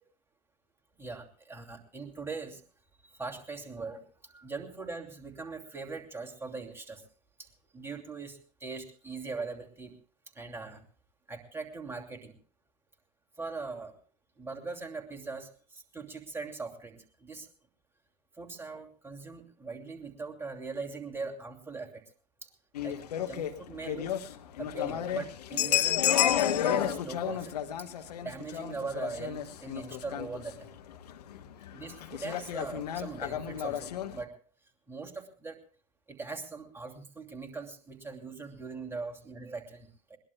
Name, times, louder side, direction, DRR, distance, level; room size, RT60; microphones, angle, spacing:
voice 1, 1.0-2.6 3.2-7.0 7.4-7.5 7.7-10.0 10.3-10.8 11.3-12.4 13.4-13.9 14.4-17.5 18.4-22.0 22.4-22.5 22.8-24.2 24.6-27.5 27.8-30.7 31.7-34.3 34.9-35.6 36.1-40.2, right 4 dB, 10° right, 2 dB, 2.7 m, -41 dB
sound 1, 22.7-34.2, left 11 dB, 70° left, 1.1 m, -31 dB
21.5 x 19.5 x 2.3 m, 0.41 s
figure-of-eight pair, 75°, 21 cm